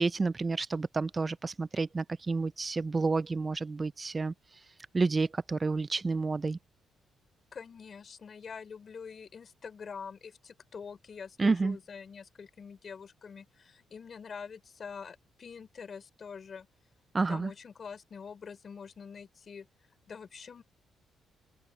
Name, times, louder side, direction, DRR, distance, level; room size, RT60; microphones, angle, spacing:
voice 1, 0.0-4.3 4.9-6.6 11.4-11.8 17.1-17.5, right 3 dB, 25° right, 0.3 m, -29 dB
voice 2, 7.5-16.7 17.3-19.7 20.1-20.6, left 6 dB, 45° left, 5.4 m, -45 dB
cardioid pair, 100°, 0 cm